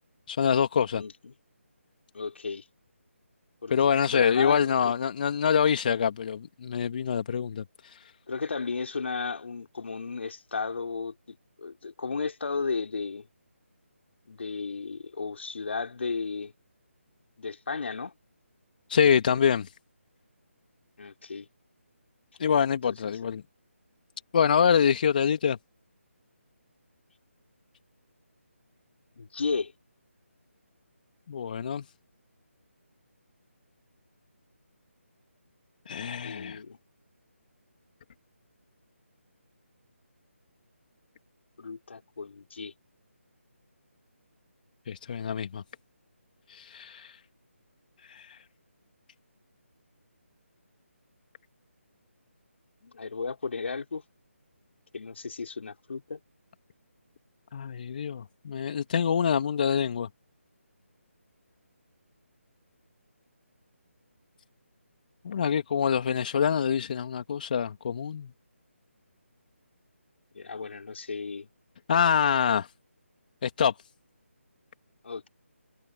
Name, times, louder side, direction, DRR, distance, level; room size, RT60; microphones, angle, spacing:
voice 1, 0.3-1.0 3.7-8.0 18.9-19.7 22.4-23.4 24.3-25.6 31.3-31.8 35.9-36.6 44.9-45.6 46.5-47.2 48.0-48.4 57.5-60.1 65.2-68.3 71.9-72.7 73.4-73.7, left 7 dB, 40° left, 2.2 m, -25 dB
voice 2, 0.9-1.3 2.1-2.6 3.6-3.7 4.1-4.9 8.3-13.3 14.3-16.5 17.4-18.1 21.0-21.5 22.9-23.0 23.2-23.3 29.2-29.7 36.2-36.8 41.6-42.7 52.8-54.0 54.9-56.2 70.3-71.5 75.0-75.3, left 4 dB, 60° left, 3.5 m, -34 dB
figure-of-eight pair, 155°, 7 cm